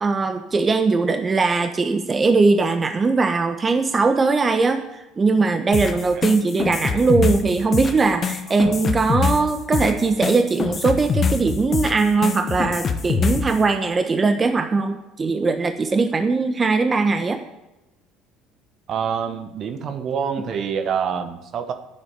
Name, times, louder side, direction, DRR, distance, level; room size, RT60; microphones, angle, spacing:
voice 1, 0.0-17.4, right 4 dB, 30° right, 7 dB, 1.1 m, -20 dB
sound 1, 5.7-13.6, left 5 dB, 40° left, 1.2 m, -24 dB
voice 2, 18.9-21.7, right 7 dB, 50° right, 8 dB, 1.2 m, -26 dB
9.3 x 8.9 x 6.8 m, 0.98 s
hypercardioid pair, 65°, 0 cm